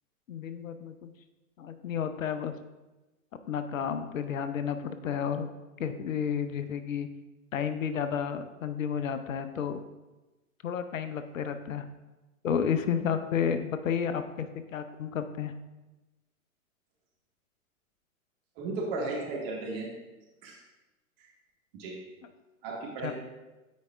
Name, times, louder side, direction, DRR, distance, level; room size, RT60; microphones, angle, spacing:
voice 1, 0.3-1.1 1.6-2.6 3.5-5.5 5.8-7.1 7.5-9.8 10.6-11.9 12.4-15.5 23.0-23.1, left 7 dB, 65° left, 10 dB, 0.6 m, -31 dB
voice 2, 18.6-19.9 20.4-20.6 21.8-22.0 22.6-23.1, right 3 dB, 45° right, -3 dB, 2.0 m, -34 dB
9.2 x 4.6 x 2.5 m, 1.1 s
figure-of-eight pair, 105°, 42 cm